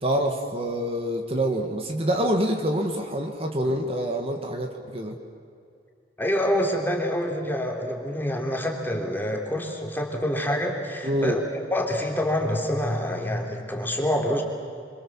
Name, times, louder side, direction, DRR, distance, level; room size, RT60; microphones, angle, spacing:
voice 1, 0.0-5.2 11.0-11.4, right 1 dB, 35° right, 3 dB, 1.9 m, -26 dB
voice 2, 6.2-11.4 11.7-14.4, equal, 10° left, 1 dB, 3.2 m, -26 dB
26.0 x 25.0 x 7.4 m, 2.4 s
head